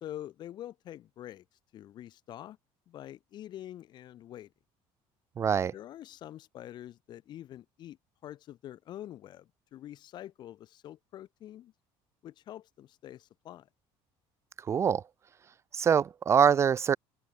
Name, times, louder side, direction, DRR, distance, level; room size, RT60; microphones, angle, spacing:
voice 1, 0.0-1.4 1.7-2.6 2.9-4.5 5.7-8.0 8.2-11.7 12.2-13.7, left 12 dB, 40° left, 1.6 m, -45 dB
voice 2, 5.4-5.7 14.6-15.0 15.7-17.0, right 7 dB, 25° right, 0.7 m, -24 dB
open air
cardioid pair, 170°, 11 cm